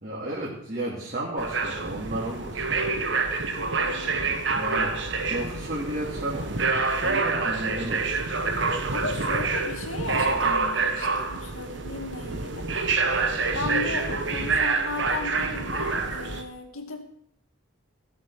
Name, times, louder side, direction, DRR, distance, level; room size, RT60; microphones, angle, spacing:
voice 1, 0.0-2.7 4.5-4.9 5.3-6.5 7.0-8.2, right 1 dB, 45° right, -5 dB, 2.6 m, -33 dB
sound 1, 1.4-16.4, right 4 dB, 60° right, 1.3 m, -27 dB
voice 2, 3.6-4.3 8.9-12.7 13.5-17.0, left 3 dB, 85° left, 4 dB, 2.1 m, -35 dB
17.0 x 7.6 x 6.2 m, 0.69 s
head